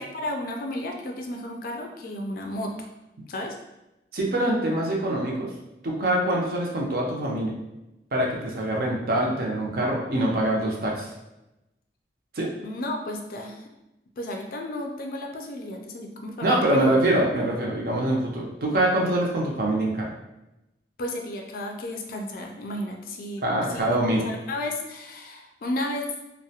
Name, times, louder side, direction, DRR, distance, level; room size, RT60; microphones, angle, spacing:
voice 1, 0.0-2.9 3.3-3.5 12.6-13.6 14.2-17.0 21.0-23.4 23.7-23.9 24.2-26.1, left 1 dB, 55° left, 2 dB, 0.3 m, -33 dB
voice 2, 4.1-5.5 5.8-7.5 8.1-11.1 12.3-12.5 16.4-20.1 23.4-24.3, right 1 dB, 55° right, -2 dB, 0.5 m, -24 dB
2.3 x 2.1 x 2.7 m, 0.93 s
head